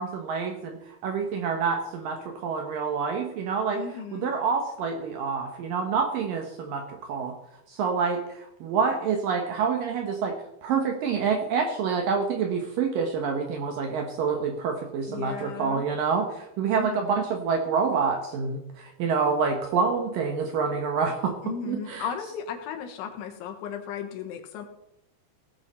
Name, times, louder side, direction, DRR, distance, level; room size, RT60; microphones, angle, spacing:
voice 1, 0.0-3.8 4.1-7.3 7.7-10.4 10.6-21.3 21.7-22.1, right 5 dB, 70° right, 4 dB, 2.2 m, -27 dB
voice 2, 3.7-4.3 15.1-15.8 16.8-17.2 21.4-24.7, left 7 dB, 90° left, 4 dB, 3.9 m, -35 dB
17.5 x 8.7 x 4.3 m, 0.84 s
omnidirectional pair, 5.3 m